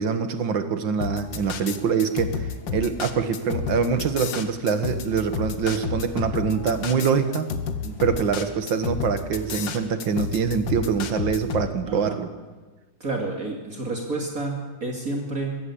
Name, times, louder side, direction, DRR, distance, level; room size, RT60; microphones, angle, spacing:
voice 1, 0.0-7.5 8.0-12.3, right 6 dB, 80° right, 9 dB, 2.2 m, -24 dB
sound 1, 1.0-11.7, left 6 dB, 80° left, 2.0 m, -30 dB
voice 2, 7.8-8.2 11.9-12.2 13.0-15.6, right 2 dB, 50° right, 0 dB, 2.9 m, -30 dB
22.0 x 14.5 x 8.6 m, 1.3 s
omnidirectional pair, 2.0 m